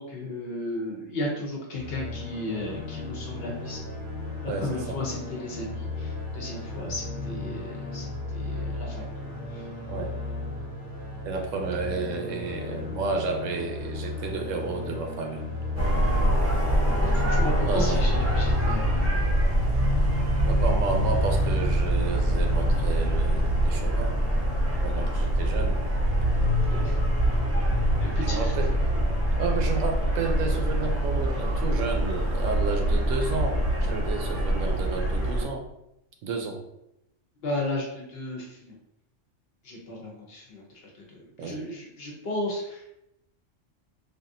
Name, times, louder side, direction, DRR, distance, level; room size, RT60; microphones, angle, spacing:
voice 1, 0.0-3.8 4.4-9.1 9.5-9.6 17.0-19.2 26.7-26.9 28.0-28.5 37.4-38.8 39.6-40.6 41.1-42.8, left 1 dB, 60° left, -2 dB, 0.8 m, -34 dB
sound 1, 1.8-18.8, left 3 dB, 5° left, 0.9 m, -35 dB
voice 2, 4.4-5.0 9.9-10.1 11.2-15.4 17.6-18.0 20.4-24.2 24.8-25.8 28.2-28.7 29.4-35.6 36.2-36.6 41.4-41.6, right 4 dB, 75° right, 3 dB, 0.9 m, -31 dB
sound 2, 15.8-35.4, equal, 20° right, 0.4 m, -24 dB
3.4 x 2.4 x 2.6 m, 0.83 s
omnidirectional pair, 1.3 m